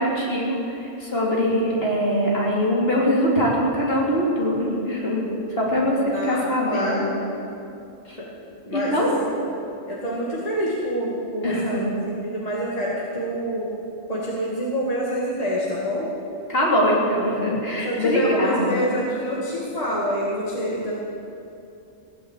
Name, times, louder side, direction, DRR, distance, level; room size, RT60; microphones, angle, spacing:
voice 1, 0.0-5.3 5.6-7.0 8.1-8.2 8.7-9.1 11.4-11.9 16.5-19.1, equal, 45° left, -4 dB, 3.3 m, -22 dB
voice 2, 6.1-7.1 8.2-8.3 8.6-9.5 9.9-12.0 12.2-13.7 14.1-16.1 17.8-20.9, equal, 30° left, -5 dB, 2.2 m, -27 dB
17.0 x 9.4 x 8.3 m, 2.7 s
omnidirectional pair, 1.3 m